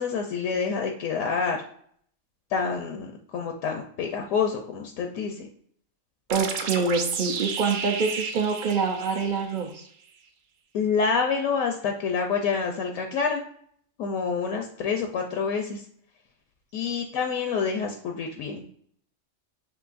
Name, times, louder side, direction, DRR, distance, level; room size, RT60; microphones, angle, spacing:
voice 1, 0.0-1.6 2.5-5.5 10.7-13.4 14.0-15.8 16.7-18.6, left 5 dB, 80° left, 3 dB, 1.0 m, -27 dB
voice 2, 6.3-9.8, right 5 dB, 55° right, 3 dB, 0.5 m, -26 dB
sound 1, 6.3-9.8, right 6 dB, 70° right, 1.0 m, -32 dB
5.9 x 2.7 x 2.4 m, 0.63 s
omnidirectional pair, 1.4 m